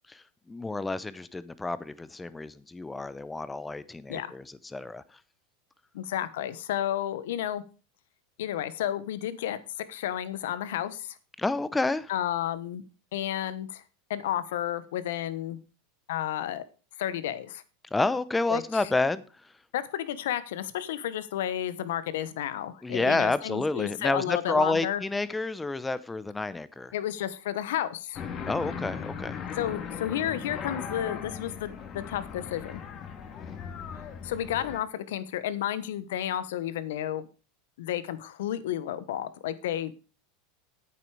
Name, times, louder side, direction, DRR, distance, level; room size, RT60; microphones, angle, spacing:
voice 1, 0.5-5.0 11.4-12.1 17.9-19.2 22.8-26.9 28.4-29.4, left 3 dB, 10° left, 0.8 m, -29 dB
voice 2, 5.9-7.6 8.4-11.2 12.1-12.8 13.1-13.8 14.1-15.6 16.1-16.6 17.0-17.6 18.5-18.9 19.7-25.0 26.9-28.2 29.5-32.8 34.2-37.3 37.8-39.9, left 11 dB, 80° left, 1.2 m, -32 dB
sound 1, 28.1-34.8, left 7 dB, 35° left, 2.1 m, -38 dB
9.4 x 8.8 x 4.8 m
supercardioid pair, 125°, 0 cm